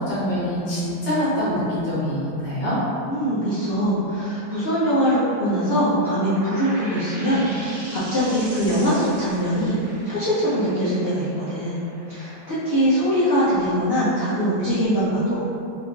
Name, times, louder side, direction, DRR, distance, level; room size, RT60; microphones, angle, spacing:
voice 1, 0.0-2.8, equal, 85° left, -10 dB, 1.7 m, -24 dB
voice 2, 3.1-9.8 10.0-11.8 12.1-15.4, equal, 50° left, -12 dB, 0.7 m, -22 dB
sound 1, 6.2-13.5, right 1 dB, 70° right, 1.7 m, -39 dB
4.2 x 2.5 x 2.8 m, 2.7 s
omnidirectional pair, 1.9 m